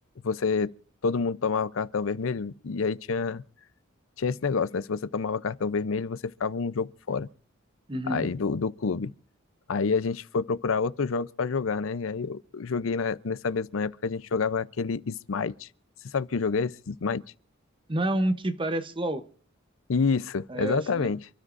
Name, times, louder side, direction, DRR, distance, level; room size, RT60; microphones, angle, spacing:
voice 1, 0.2-0.7 1.0-3.4 4.2-7.3 8.1-9.1 9.7-15.7 16.1-17.2 19.9-21.3, left 5 dB, 80° left, 0.6 m, -28 dB
voice 2, 7.9-8.3 17.9-19.2 20.5-21.1, right 1 dB, 25° right, 0.9 m, -28 dB
28.5 x 12.5 x 2.6 m
head